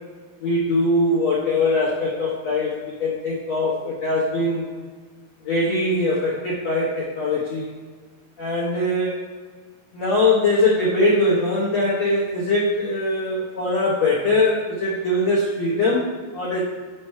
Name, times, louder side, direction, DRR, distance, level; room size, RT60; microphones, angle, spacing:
voice 1, 0.4-4.7 5.4-7.7 8.4-9.2 9.9-16.6, left 2 dB, 90° left, -6 dB, 1.4 m, -22 dB
6.0 x 4.4 x 5.8 m, 1.5 s
omnidirectional pair, 5.0 m